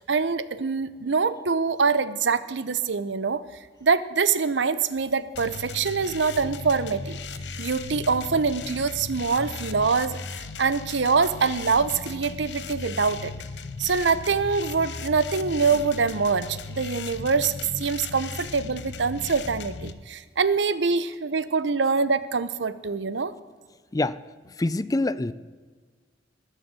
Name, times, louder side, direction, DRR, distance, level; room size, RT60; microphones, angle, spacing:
voice 1, 0.0-3.4 3.8-7.2 7.6-13.3 13.8-23.3, right 5 dB, 85° right, 15 dB, 0.8 m, -24 dB
sound 1, 5.3-19.9, left 4 dB, 75° left, 0.9 m, -37 dB
voice 2, 24.5-25.3, left 2 dB, 20° left, 16 dB, 0.4 m, -25 dB
20.0 x 6.7 x 7.6 m, 1.5 s
head